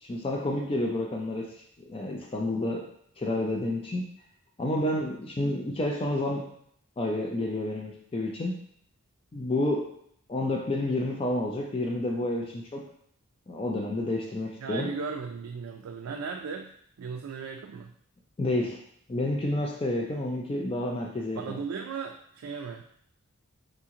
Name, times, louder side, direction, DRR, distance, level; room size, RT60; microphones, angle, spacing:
voice 1, 0.0-2.9 3.2-4.1 4.6-6.5 7.0-8.6 9.3-9.9 10.3-12.9 13.5-14.9 18.4-18.8 19.1-21.6, left 1 dB, 25° left, 0 dB, 0.4 m, -30 dB
voice 2, 14.6-16.7 17.0-17.9 21.4-22.8, right 5 dB, 75° right, 3 dB, 0.3 m, -36 dB
4.1 x 2.9 x 3.6 m, 0.66 s
head